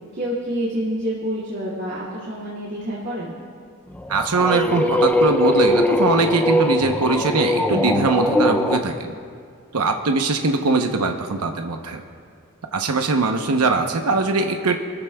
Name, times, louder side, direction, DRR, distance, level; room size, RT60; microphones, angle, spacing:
voice 1, 0.1-3.4, equal, 50° right, -8 dB, 2.5 m, -27 dB
sound 1, 4.0-8.8, left 1 dB, 5° left, 0.5 m, -20 dB
voice 2, 4.1-9.1 9.7-12.0 12.7-14.8, right 3 dB, 90° right, 4 dB, 0.9 m, -21 dB
25.5 x 14.0 x 2.3 m, 2.2 s
head